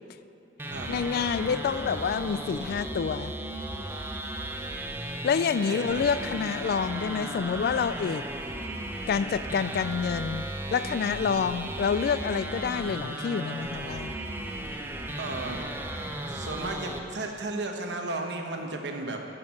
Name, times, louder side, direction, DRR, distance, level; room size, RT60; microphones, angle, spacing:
sound 1, 0.6-17.0, right 1 dB, 15° right, 0.6 m, -35 dB
voice 1, 0.9-3.3 5.2-8.2 9.1-10.4 10.7-14.2, left 6 dB, 60° left, 14 dB, 0.3 m, -28 dB
voice 2, 5.7-6.0 15.2-15.7 16.3-19.2, right 2 dB, 80° right, 3 dB, 1.0 m, -34 dB
11.0 x 4.5 x 7.4 m, 2.6 s
head